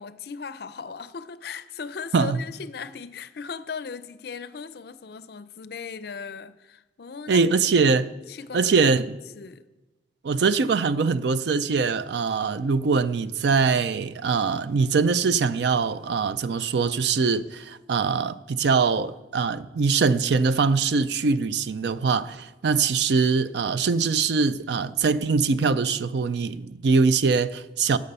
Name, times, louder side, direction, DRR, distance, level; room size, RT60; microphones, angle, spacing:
voice 1, 0.0-7.4 8.3-8.9 9.3-9.7, left 5 dB, 55° left, 0.5 m, -38 dB
voice 2, 7.3-8.1 8.5-9.2 10.2-28.0, right 4 dB, 65° right, 0.4 m, -23 dB
13.5 x 6.5 x 5.4 m
head